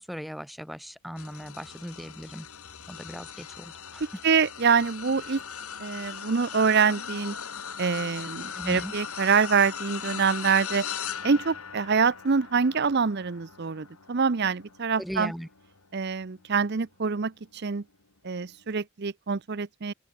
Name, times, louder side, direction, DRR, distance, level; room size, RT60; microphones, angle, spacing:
voice 1, 0.0-2.5 2.9-4.1 8.5-8.9 15.0-15.5, equal, ahead, 2.2 m, -38 dB
sound 1, 1.2-16.7 17.2-17.4 18.7-18.8, left 7 dB, 85° left, 2.9 m, -39 dB
voice 2, 4.2-5.4 5.8-7.3 7.8-10.9 11.2-15.3 15.9-17.8 18.2-19.9, right 5 dB, 50° right, 0.6 m, -25 dB
open air
head